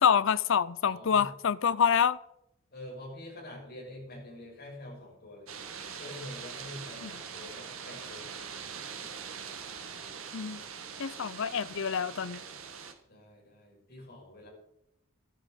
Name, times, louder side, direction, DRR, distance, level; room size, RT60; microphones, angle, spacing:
voice 1, 0.0-2.2 7.0-7.1 10.3-10.6 11.0-12.4, left 7 dB, 65° left, 18 dB, 0.5 m, -26 dB
voice 2, 0.8-1.3 2.7-5.5 6.0-8.7 11.1-11.2 13.1-14.5, left 1 dB, 50° left, -4 dB, 6.4 m, -46 dB
sound 1, 5.5-12.9, right 6 dB, 80° right, 1.6 m, -43 dB
13.5 x 11.0 x 5.2 m, 0.79 s
head